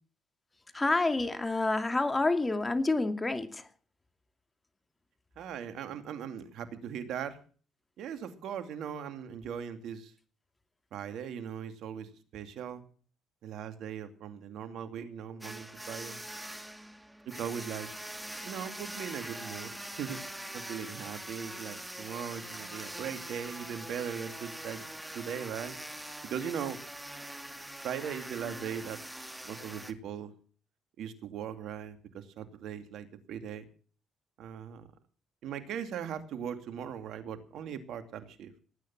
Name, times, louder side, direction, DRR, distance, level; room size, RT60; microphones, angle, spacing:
voice 1, 0.7-3.7, left 2 dB, 20° left, 8 dB, 2.6 m, -28 dB
voice 2, 5.4-7.4 8.0-10.1 10.9-12.8 13.4-16.2 17.3-17.9 18.4-20.2 20.5-24.8 25.1-25.7 26.3-26.8 27.8-29.0 29.4-30.3 31.0-33.6 34.4-34.8 35.4-38.6, right 8 dB, 70° right, 9 dB, 2.5 m, -39 dB
sound 1, 15.4-29.9, right 1 dB, 10° right, 2.3 m, -43 dB
19.0 x 9.7 x 6.1 m, 0.41 s
supercardioid pair, 70°, 0 cm